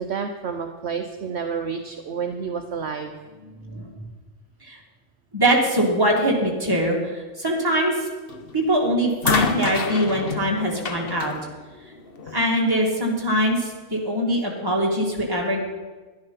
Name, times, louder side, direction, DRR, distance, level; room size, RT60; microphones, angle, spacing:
voice 1, 0.0-3.1, right 6 dB, 60° right, 5 dB, 1.0 m, -29 dB
voice 2, 5.3-7.9 8.5-11.3 12.3-15.6, equal, 15° right, -2 dB, 2.4 m, -22 dB
sound 1, 8.3-8.6 9.2-12.5 13.5-13.6, left 4 dB, 50° left, 1.1 m, -28 dB
11.5 x 11.0 x 5.7 m, 1.3 s
omnidirectional pair, 1.3 m